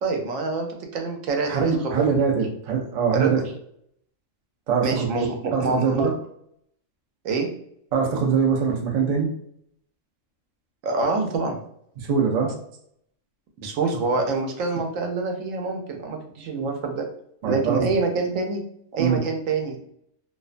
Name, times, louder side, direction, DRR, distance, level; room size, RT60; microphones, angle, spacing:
voice 1, 0.0-1.5 1.8-2.1 3.1-3.3 4.8-6.1 7.2-7.5 10.8-11.6 13.6-17.1 17.4-18.6 18.9-19.8, right 4 dB, 80° right, 3 dB, 1.0 m, -26 dB
voice 2, 1.5-3.5 4.7-5.1 5.5-6.1 7.9-9.3 12.0-12.6 17.4-17.8 19.0-19.3, right 6 dB, 65° right, 0 dB, 0.4 m, -23 dB
2.5 x 2.2 x 2.4 m, 0.69 s
omnidirectional pair, 1.3 m